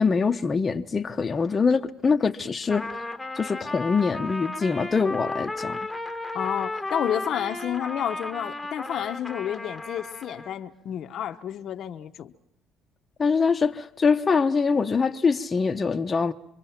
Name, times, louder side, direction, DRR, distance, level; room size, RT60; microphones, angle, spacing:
voice 1, 0.0-2.9 3.4-5.8 13.2-16.3, left 5 dB, 25° left, 0.9 m, -23 dB
Trumpet, 2.6-10.5, left 2 dB, 5° left, 1.3 m, -34 dB
voice 2, 6.3-12.3, left 10 dB, 55° left, 0.9 m, -30 dB
27.0 x 23.0 x 5.8 m
cardioid pair, 100°, 0 cm